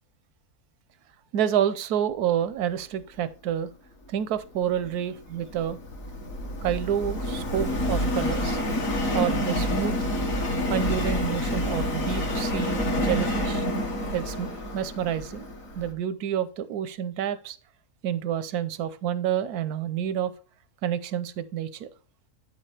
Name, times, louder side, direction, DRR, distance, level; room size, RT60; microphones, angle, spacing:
voice 1, 1.3-3.7 4.1-5.8 6.6-8.6 9.1-9.9 10.7-13.7 14.1-15.5 15.7-17.6 18.0-20.3 20.8-21.9, right 9 dB, 90° right, 1.2 m, -28 dB
Subway metro underground, 4.6-15.9, left 1 dB, 60° left, 2.0 m, -28 dB
8.9 x 6.6 x 3.3 m
omnidirectional pair, 1.6 m